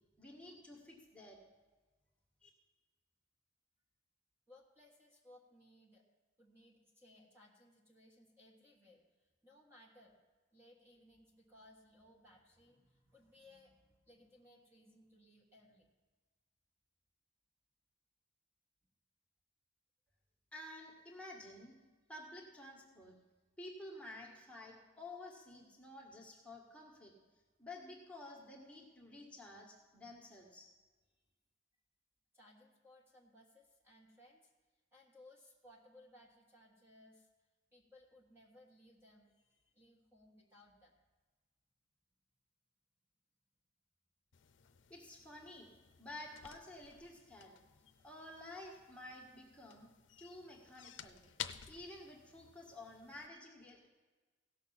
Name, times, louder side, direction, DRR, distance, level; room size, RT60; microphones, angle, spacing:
voice 1, 0.2-1.4 2.4-2.5 20.5-21.7 22.1-23.2 23.6-27.1 27.6-30.7 44.9-45.7 46.0-47.6 48.0-49.9 50.2-51.2 51.7-53.9, left 1 dB, 5° left, -2 dB, 1.6 m, -52 dB
voice 2, 4.5-6.0 6.4-10.2 10.5-15.9 32.3-34.5 34.9-37.3 37.7-41.0, left 1 dB, 15° right, -2 dB, 1.5 m, -63 dB
sound 1, 44.3-53.3, left 10 dB, 75° left, 0.6 m, -53 dB
16.5 x 6.5 x 5.6 m, 1.3 s
head